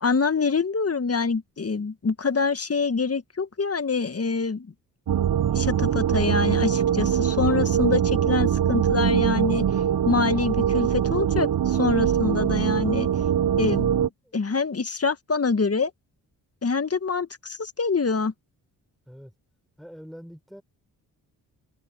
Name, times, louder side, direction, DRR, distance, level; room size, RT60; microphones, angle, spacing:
voice 1, 0.0-4.7 5.5-9.6 10.0-13.1 13.6-15.9 16.6-18.3, left 4 dB, 35° left, 1.7 m, -25 dB
sound 1, 5.1-14.1, right 9 dB, 50° right, 1.1 m, -23 dB
voice 2, 19.8-20.6, equal, ahead, 6.0 m, -44 dB
supercardioid pair, 45°, 44 cm